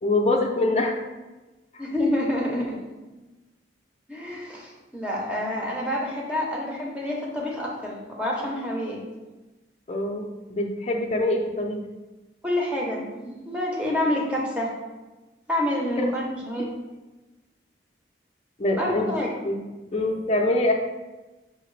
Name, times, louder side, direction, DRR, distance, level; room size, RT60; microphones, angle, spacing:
voice 1, 0.0-0.9 9.9-11.8 16.0-16.1 18.6-19.1 19.4-19.6 19.9-20.7, left 2 dB, 35° left, 2 dB, 0.5 m, -24 dB
voice 2, 1.8-2.8 4.1-9.0 12.4-14.7 15.5-16.7 18.7-19.3, left 1 dB, 5° right, -3 dB, 0.7 m, -28 dB
5.6 x 2.9 x 3.2 m, 1.1 s
head